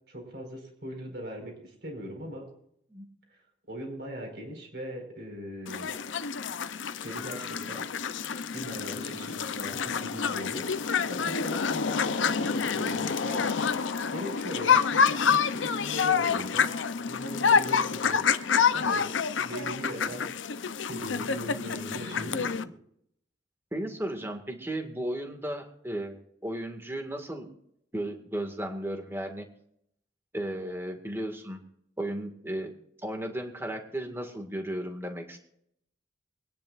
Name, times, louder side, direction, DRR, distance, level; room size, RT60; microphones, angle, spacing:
voice 1, 0.1-2.5 3.3-3.4 3.7-5.9 7.0-8.0 8.5-13.7 14.1-16.6 17.1-20.3 20.8-22.7, equal, 55° right, 2 dB, 5.0 m, -40 dB
sound 1, 5.7-22.6, left 6 dB, 80° left, 0.7 m, -28 dB
voice 2, 23.7-27.5 27.9-29.5 30.3-31.6 32.0-32.7 33.0-35.4, right 1 dB, 10° right, 4 dB, 1.9 m, -35 dB
24.5 x 10.5 x 2.5 m, 0.71 s
head